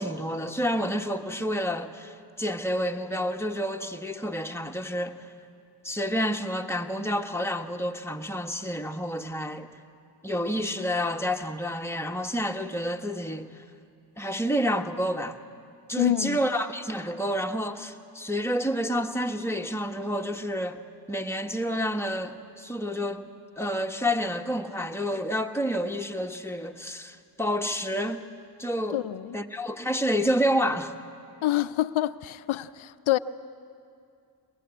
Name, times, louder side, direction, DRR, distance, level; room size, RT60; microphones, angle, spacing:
voice 1, 0.0-5.2 5.8-9.7 10.2-13.5 14.2-15.3 15.9-20.8 21.1-23.3 23.6-28.2 28.6-29.0 29.3-30.9, equal, 5° left, 1.5 m, -29 dB
voice 2, 16.0-16.4 28.9-29.4 31.4-33.2, left 14 dB, 75° left, 0.6 m, -26 dB
22.0 x 21.0 x 8.5 m
supercardioid pair, 45°, 48 cm